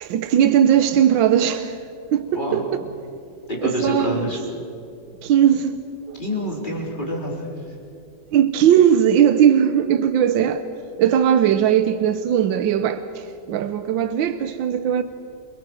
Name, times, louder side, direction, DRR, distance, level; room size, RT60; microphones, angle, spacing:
voice 1, 0.0-1.8 2.1-2.7 3.6-4.3 5.2-5.8 6.1-6.2 8.3-10.6 11.0-15.0, right 9 dB, 85° right, 1.6 m, -18 dB
voice 2, 2.3-2.6 3.5-4.4 6.2-7.5, equal, 25° left, 4.5 m, -26 dB
29.0 x 22.0 x 6.4 m
omnidirectional pair, 2.0 m